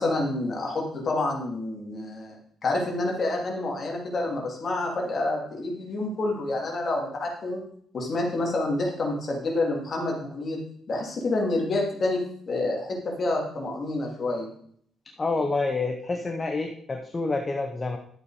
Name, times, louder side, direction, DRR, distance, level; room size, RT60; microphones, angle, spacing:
voice 1, 0.0-2.4 2.6-7.6 7.9-10.6 10.9-14.5, left 2 dB, 35° left, -1 dB, 2.9 m, -28 dB
voice 2, 15.2-18.0, left 3 dB, 20° left, 4 dB, 0.9 m, -28 dB
11.5 x 7.8 x 4.9 m, 0.63 s
cardioid pair, 160°, 0 cm